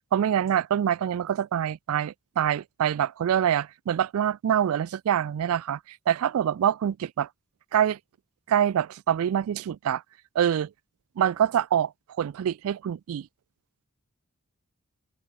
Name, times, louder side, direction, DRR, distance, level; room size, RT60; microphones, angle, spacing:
voice 1, 0.1-7.3 7.7-8.0 8.5-10.0 10.4-10.7 11.2-11.9 12.2-13.3, right 9 dB, 75° right, 0.3 m, -25 dB
open air
head